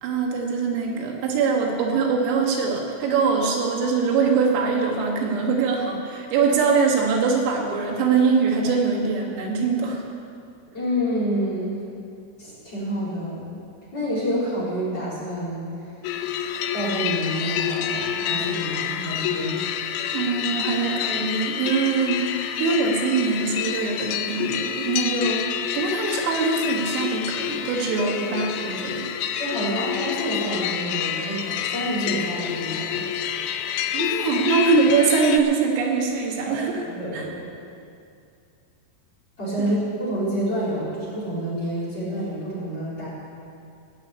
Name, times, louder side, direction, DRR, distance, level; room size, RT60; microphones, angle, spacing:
voice 1, 0.0-10.0 20.1-22.3 22.6-25.4 25.8-29.1 33.9-36.8 37.1-37.3 39.6-39.7, right 5 dB, 90° right, 0 dB, 4.4 m, -23 dB
voice 2, 10.7-11.8 12.4-13.5 13.9-15.8 16.7-19.6 28.0-28.1 29.4-33.1 36.4-37.5 39.4-43.1, equal, 20° left, -8 dB, 4.5 m, -28 dB
sound 1, 16.0-35.4, left 9 dB, 85° left, 2.5 m, -28 dB
17.5 x 7.0 x 8.4 m, 2.5 s
omnidirectional pair, 5.8 m